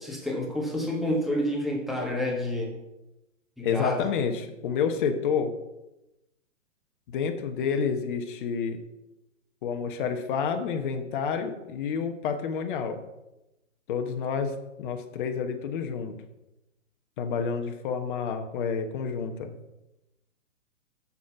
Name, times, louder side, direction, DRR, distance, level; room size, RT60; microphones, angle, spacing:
voice 1, 0.0-2.7 3.6-4.0, left 1 dB, ahead, -1 dB, 1.6 m, -29 dB
voice 2, 3.6-5.5 7.1-8.8 9.6-13.0 13.9-16.1 17.2-19.5, left 6 dB, 40° left, 6 dB, 1.1 m, -29 dB
7.2 x 6.4 x 5.8 m, 0.95 s
figure-of-eight pair, 125°, 38 cm